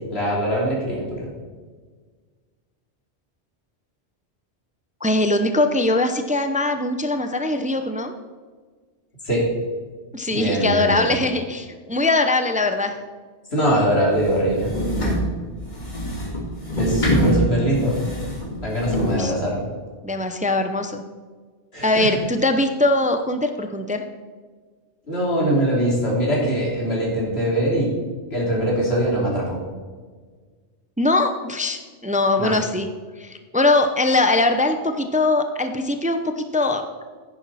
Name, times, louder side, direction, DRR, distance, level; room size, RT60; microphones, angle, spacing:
voice 1, 0.1-1.3 9.2-9.5 10.3-11.1 13.5-14.7 16.8-18.0 18.6-19.6 21.7-22.1 25.1-27.9 28.3-29.6 32.4-32.5, equal, 65° left, -4 dB, 3.5 m, -22 dB
voice 2, 5.0-8.1 10.1-13.0 19.1-19.3 20.0-21.0 21.8-24.0 31.0-32.9 33.2-36.8, left 2 dB, 10° right, 7 dB, 0.5 m, -21 dB
sound 1, 14.2-19.2, equal, 40° left, 2.2 m, -24 dB
10.5 x 10.0 x 4.2 m, 1.5 s
omnidirectional pair, 1.2 m